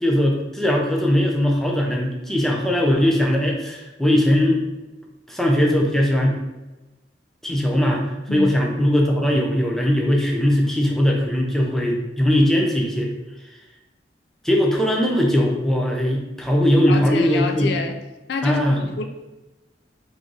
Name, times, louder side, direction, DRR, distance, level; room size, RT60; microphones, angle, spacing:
voice 1, 0.0-4.6 5.3-6.4 7.4-8.0 8.3-13.1 14.4-17.7 18.4-18.8, equal, ahead, -1 dB, 0.6 m, -19 dB
voice 2, 16.9-18.0 18.3-19.0, left 3 dB, 65° left, 5 dB, 0.4 m, -27 dB
3.8 x 3.2 x 3.9 m, 1.1 s
head